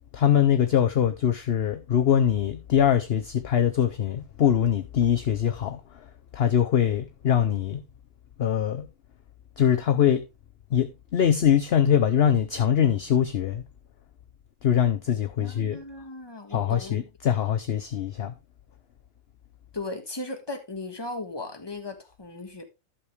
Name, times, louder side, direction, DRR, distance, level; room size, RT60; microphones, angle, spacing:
voice 1, 0.1-7.8 8.4-8.9 9.6-10.2 10.7-13.6 14.6-15.8 16.5-18.3, left 9 dB, 55° left, 0.8 m, -23 dB
voice 2, 15.4-17.0 19.7-22.6, left 2 dB, 20° left, 1.4 m, -37 dB
11.5 x 7.0 x 3.2 m
omnidirectional pair, 1.4 m